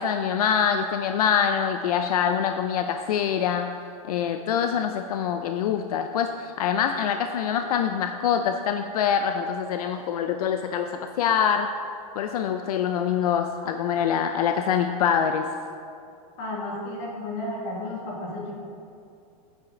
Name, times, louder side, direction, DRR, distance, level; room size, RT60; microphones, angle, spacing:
voice 1, 0.0-3.7 4.1-10.9 11.2-11.7 12.2-15.5, left 8 dB, 80° left, 7 dB, 0.6 m, -25 dB
voice 2, 16.4-18.5, left 1 dB, 35° left, -3 dB, 2.3 m, -33 dB
11.0 x 9.1 x 3.9 m, 2.5 s
supercardioid pair, 170°, 19 cm